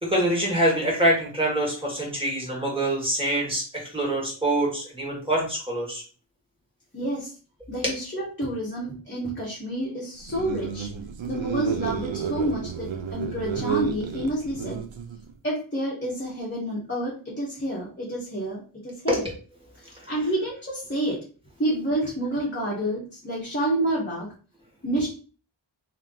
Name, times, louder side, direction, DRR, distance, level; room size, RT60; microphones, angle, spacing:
voice 1, 0.0-6.0 7.8-7.9 19.1-19.2, right 1 dB, 10° right, -4 dB, 1.8 m, -25 dB
voice 2, 6.9-7.3 7.7-10.9 11.3-14.8 15.4-19.2 19.8-21.2 21.6-24.3 24.8-25.1, right 1 dB, 25° left, -5 dB, 1.3 m, -29 dB
sound 1, 10.2-15.3, right 7 dB, 85° right, 0.6 m, -31 dB
3.3 x 2.9 x 3.8 m, 0.38 s
wide cardioid pair, 90°, 45 cm